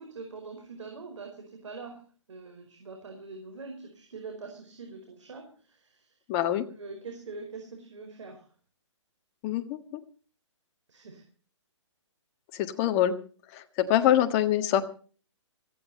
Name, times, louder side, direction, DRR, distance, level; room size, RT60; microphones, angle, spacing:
voice 1, 0.0-2.0 2.3-6.2 6.6-8.5 10.9-11.2, right 4 dB, 75° right, 4 dB, 5.0 m, -43 dB
voice 2, 6.3-6.6 9.4-10.0 12.5-13.1 13.5-14.9, left 11 dB, 30° left, 8 dB, 1.5 m, -25 dB
17.0 x 15.5 x 4.3 m, 0.40 s
hypercardioid pair, 145°, 16 cm